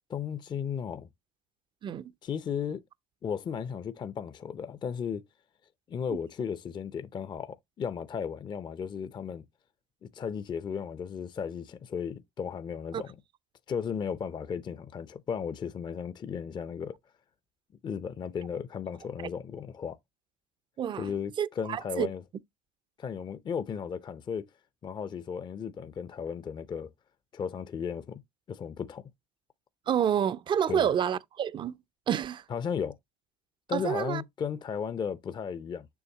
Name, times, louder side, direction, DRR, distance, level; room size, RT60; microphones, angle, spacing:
voice 1, 0.1-1.1 2.2-2.8 3.2-5.2 5.9-9.4 10.0-13.2 13.7-17.0 17.8-20.0 21.0-22.2 23.0-24.5 24.8-26.9 27.3-28.2 28.5-29.0 30.7-30.9 32.5-33.0 33.7-35.9, left 7 dB, 25° left, 0.5 m, -35 dB
voice 2, 20.8-21.1 21.4-22.1 29.9-31.8 32.1-32.4 33.7-34.2, right 9 dB, 30° right, 0.5 m, -28 dB
7.1 x 6.3 x 2.9 m
supercardioid pair, 95°, 17 cm